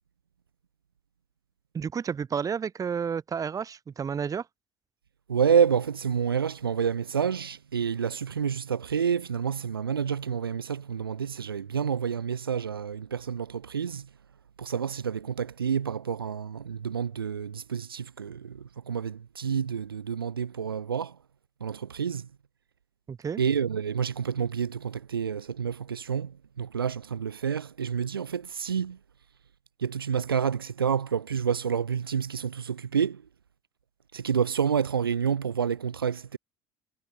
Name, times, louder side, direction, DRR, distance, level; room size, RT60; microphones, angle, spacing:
voice 1, 1.7-4.5 23.1-23.4, right 6 dB, 30° right, 1.0 m, -31 dB
voice 2, 5.3-14.1 14.6-21.2 21.6-22.3 23.4-29.0 29.8-33.2 34.1-36.4, right 7 dB, 85° right, 0.7 m, -29 dB
figure-of-eight pair, 65°, 12 cm